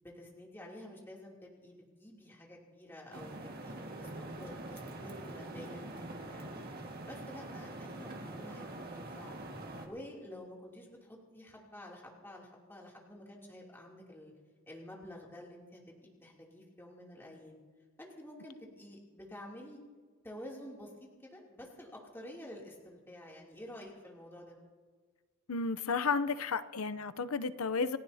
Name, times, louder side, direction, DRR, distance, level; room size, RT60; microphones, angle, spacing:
voice 1, 0.0-4.1 4.4-6.6 7.0-9.4 9.8-14.3 14.7-17.6 18.0-19.8 20.2-20.9 21.2-24.6, left 1 dB, 10° left, -3 dB, 2.9 m, -50 dB
sound 1, 3.1-9.9, right 2 dB, 45° right, 1.8 m, -44 dB
voice 2, 25.5-28.0, left 4 dB, 80° left, 14 dB, 0.7 m, -32 dB
29.0 x 15.5 x 2.8 m, 1.5 s
head